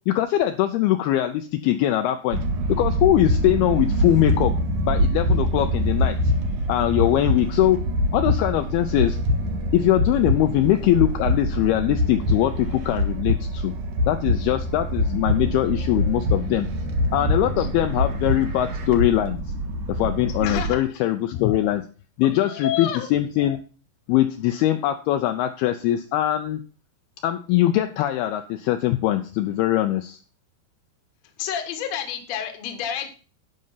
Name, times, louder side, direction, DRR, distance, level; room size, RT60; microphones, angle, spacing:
voice 1, 0.0-2.4 2.7-4.5 4.8-6.2 6.7-7.8 8.1-9.2 9.7-13.7 14.1-16.7 17.1-19.4 19.9-21.8 22.2-23.6 24.1-26.6 27.2-30.2, left 13 dB, 80° left, 7 dB, 2.3 m, -22 dB
sound 1, 2.3-20.7, equal, 60° right, 2.3 m, -24 dB
voice 2, 20.4-21.0 22.2-23.1 31.4-33.1, left 9 dB, 60° left, 6 dB, 1.8 m, -30 dB
11.0 x 5.4 x 5.6 m, 0.37 s
omnidirectional pair, 4.9 m